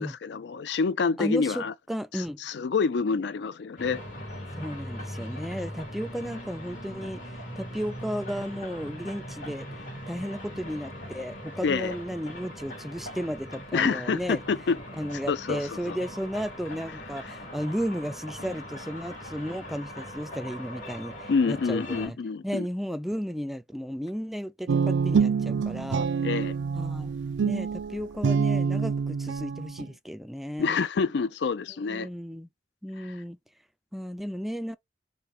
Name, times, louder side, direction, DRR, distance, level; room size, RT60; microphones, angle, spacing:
voice 1, 0.0-1.7 2.1-4.0 11.6-11.9 13.7-14.8 15.3-16.0 21.3-22.7 26.2-26.6 30.6-32.1 33.0-33.1, left 5 dB, 65° left, 0.4 m, -27 dB
voice 2, 1.2-2.4 4.6-9.7 10.1-14.4 15.0-22.2 22.4-26.1 26.7-27.1 27.4-30.8 31.9-32.5 32.8-33.4 33.9-34.8, equal, ahead, 0.3 m, -34 dB
sound 1, 3.8-22.1, equal, 45° left, 2.2 m, -40 dB
Guitar, 24.7-29.9, right 5 dB, 75° right, 0.4 m, -26 dB
5.1 x 2.3 x 4.3 m
head